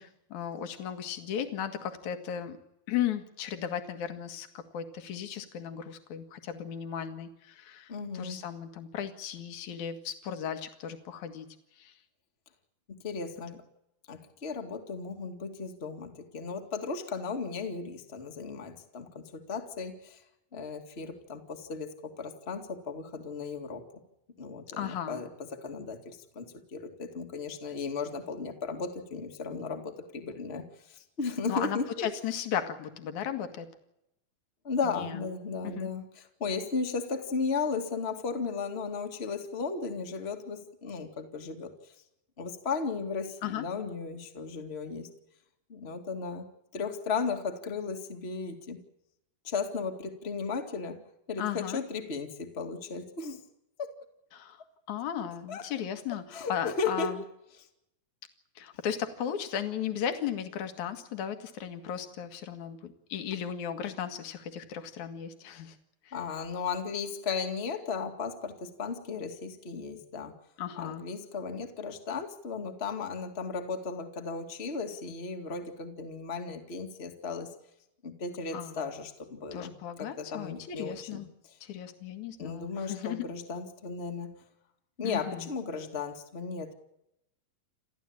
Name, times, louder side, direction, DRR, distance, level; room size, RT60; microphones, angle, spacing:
voice 1, 0.0-2.6 2.9-11.5 11.8-11.9 24.7-25.2 31.5-33.7 34.8-35.2 35.6-35.9 43.4-43.7 51.4-51.8 54.3-54.6 54.9-57.2 58.6-65.8 66.1-66.2 70.6-71.0 78.5-78.8 79.5-81.3 81.6-83.3 85.0-85.5, left 9 dB, 60° left, 8 dB, 3.0 m, -36 dB
voice 2, 7.9-8.4 12.9-13.6 14.1-20.2 20.5-23.8 24.4-25.3 25.6-32.1 34.6-36.0 36.4-41.7 42.4-45.1 45.7-48.8 49.4-51.0 51.3-53.4 53.8-53.9 55.5-55.7 56.3-57.1 66.1-70.3 70.8-77.5 78.0-81.2 82.4-84.3 85.0-86.7, left 5 dB, 20° left, 4 dB, 1.9 m, -35 dB
29.5 x 13.5 x 8.8 m, 0.83 s
omnidirectional pair, 4.3 m